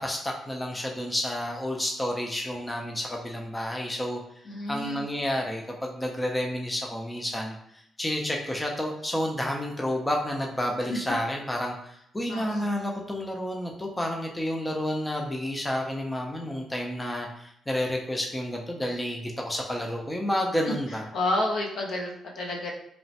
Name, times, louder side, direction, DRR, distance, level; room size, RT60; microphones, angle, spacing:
voice 1, 0.0-4.2 4.7-21.1, left 1 dB, 10° left, 1 dB, 0.4 m, -30 dB
voice 2, 4.5-5.0 10.9-11.0 12.3-12.6 20.7-20.8 21.1-22.7, left 1 dB, 65° left, 0 dB, 0.6 m, -30 dB
3.0 x 2.0 x 2.7 m, 0.72 s
cardioid pair, 110°, 0 cm